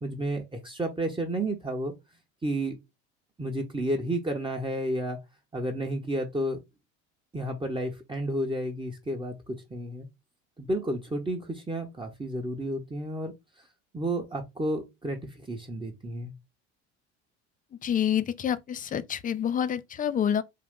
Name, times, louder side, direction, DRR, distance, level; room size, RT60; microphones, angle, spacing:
voice 1, 0.0-1.9 2.4-2.8 3.4-5.2 5.5-6.6 7.3-10.1 10.6-13.3 13.9-16.3, right 1 dB, 15° right, 0.9 m, -31 dB
voice 2, 17.8-20.4, left 9 dB, 25° left, 0.4 m, -27 dB
3.8 x 2.4 x 3.6 m
hypercardioid pair, 85°, 36 cm